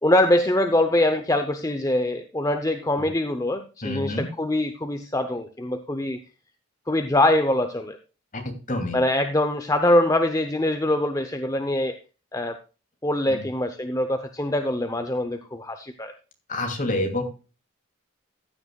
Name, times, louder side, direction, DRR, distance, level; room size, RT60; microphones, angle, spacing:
voice 1, 0.0-6.2 6.9-8.0 8.9-11.9 12.3-12.6 13.0-16.1, left 1 dB, 15° left, 8 dB, 0.7 m, -23 dB
voice 2, 3.8-4.3 8.3-8.4 8.7-9.0 13.3-13.4 16.5-17.2, left 1 dB, 40° left, 4 dB, 2.6 m, -27 dB
15.0 x 9.5 x 2.3 m, 0.32 s
head